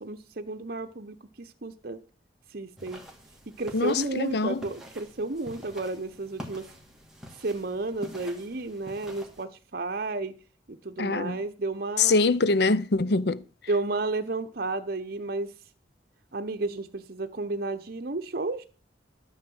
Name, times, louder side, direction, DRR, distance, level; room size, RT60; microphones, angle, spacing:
voice 1, 0.0-2.0 2.5-3.0 3.6-6.7 7.4-10.3 10.7-12.2 13.7-15.5 16.3-18.7, right 3 dB, 55° right, 0.9 m, -32 dB
sound 1, 2.8-9.4, equal, 5° right, 2.3 m, -46 dB
voice 2, 3.7-4.6 11.0-11.4 12.0-13.4, left 3 dB, 60° left, 0.6 m, -24 dB
13.0 x 4.7 x 7.9 m
head